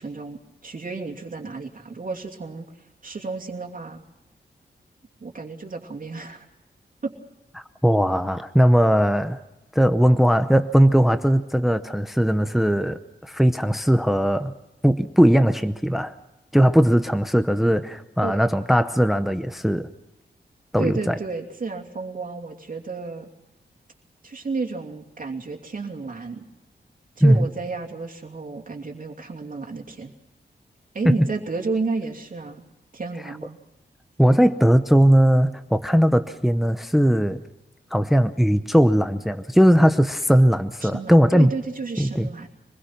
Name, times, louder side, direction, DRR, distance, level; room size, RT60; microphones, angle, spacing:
voice 1, 0.0-4.0 5.2-6.5 7.0-7.1 18.2-18.4 20.8-23.3 24.2-26.4 27.2-30.1 30.9-32.6 32.9-33.6 40.8-42.5, right 4 dB, 50° right, 2 dB, 2.7 m, -32 dB
voice 2, 7.8-9.4 9.7-14.5 14.8-16.1 16.5-19.9 20.7-21.2 27.2-27.5 31.1-31.2 34.2-37.4 37.9-41.5 42.0-42.3, equal, ahead, 10 dB, 0.7 m, -19 dB
26.0 x 21.0 x 5.9 m, 0.96 s
wide cardioid pair, 130°, 18 cm